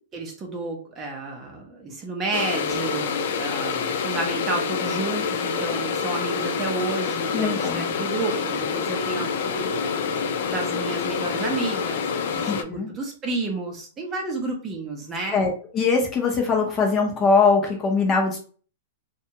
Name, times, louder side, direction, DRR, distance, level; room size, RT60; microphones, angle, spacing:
voice 1, 0.1-15.4, right 3 dB, 20° right, 1 dB, 0.6 m, -31 dB
sound 1, 2.3-12.6, left 6 dB, 60° left, 0.3 m, -27 dB
voice 2, 7.3-7.9 12.5-12.9 15.3-18.4, left 4 dB, 20° left, 1 dB, 0.6 m, -22 dB
2.7 x 2.2 x 2.8 m, 0.41 s
hypercardioid pair, 150°, 0 cm